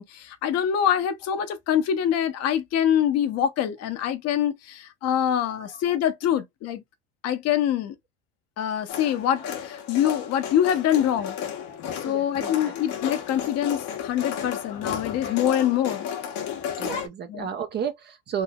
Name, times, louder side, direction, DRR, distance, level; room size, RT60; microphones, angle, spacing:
voice 1, 0.0-6.8 7.2-8.0 8.6-11.4 12.0-16.1 17.3-17.5, left 10 dB, 55° left, 0.8 m, -25 dB
voice 2, 5.5-5.8 12.0-12.7 15.8-15.9 16.8-18.4, right 7 dB, 35° right, 0.5 m, -33 dB
sound 1, 8.9-17.1, left 8 dB, 80° left, 1.1 m, -33 dB
3.1 x 2.7 x 2.3 m
supercardioid pair, 100°, 30 cm